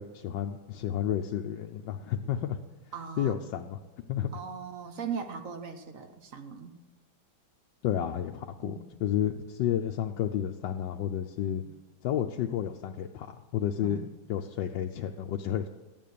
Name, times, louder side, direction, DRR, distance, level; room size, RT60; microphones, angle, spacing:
voice 1, 0.0-2.6 3.2-3.8 4.1-4.3 7.8-11.6 12.0-13.3 13.5-14.0 14.3-15.7, left 10 dB, 70° left, 3 dB, 1.3 m, -31 dB
voice 2, 2.9-3.3 4.3-6.8 8.6-8.8 11.6-11.7 13.8-14.1, right 6 dB, 50° right, 7 dB, 1.2 m, -39 dB
14.5 x 9.2 x 6.9 m, 1.1 s
omnidirectional pair, 2.3 m